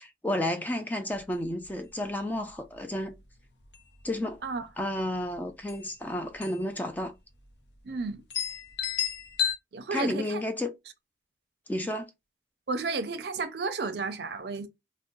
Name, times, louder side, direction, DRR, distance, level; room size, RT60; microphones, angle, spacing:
voice 1, 0.0-3.2 4.0-4.4 4.8-7.1 9.9-10.7 11.7-12.1, left 1 dB, 10° left, 0.3 m, -31 dB
sound 1, 1.2-1.3 1.6-1.7 2.2-2.5 3.1-3.3 3.6-4.3 5.3-5.4 5.7-5.8 6.4-6.7 7.0-7.1 7.8-7.9 8.3-9.6, left 10 dB, 70° left, 0.6 m, -32 dB
voice 2, 7.8-8.2 9.7-10.4 12.7-14.7, right 4 dB, 60° right, 0.5 m, -32 dB
2.6 x 2.1 x 3.7 m
head